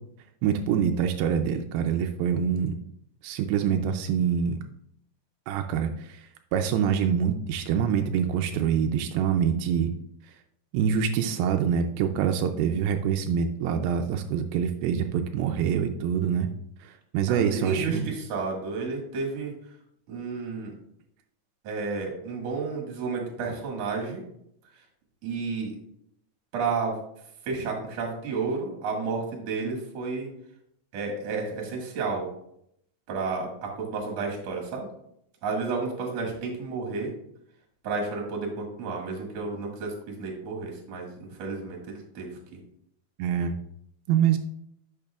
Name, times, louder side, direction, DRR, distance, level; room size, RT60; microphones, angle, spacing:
voice 1, 0.4-2.7 3.2-4.6 5.5-9.9 10.7-16.5 16.8-18.1 43.2-43.5 44.1-44.4, right 8 dB, 85° right, 5 dB, 2.4 m, -25 dB
voice 2, 17.3-19.5 20.1-20.7 21.6-24.2 25.2-25.8 26.5-27.0 27.4-30.3 30.9-32.3 33.1-34.9 35.4-37.1 37.8-42.6, right 4 dB, 55° right, -1 dB, 2.5 m, -31 dB
10.5 x 6.7 x 2.4 m, 0.74 s
omnidirectional pair, 4.2 m